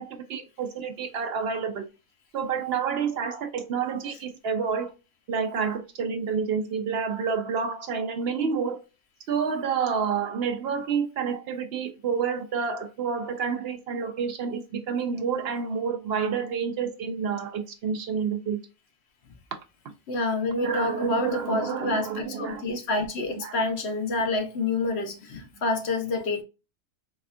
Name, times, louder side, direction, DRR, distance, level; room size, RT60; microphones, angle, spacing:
voice 1, 0.0-1.8 2.3-4.9 5.3-8.8 9.3-18.6 20.6-22.8 23.4-23.6, right 6 dB, 65° right, 0.7 m, -29 dB
voice 2, 20.1-26.4, left 2 dB, 65° left, 1.0 m, -28 dB
4.1 x 2.3 x 2.5 m
omnidirectional pair, 1.3 m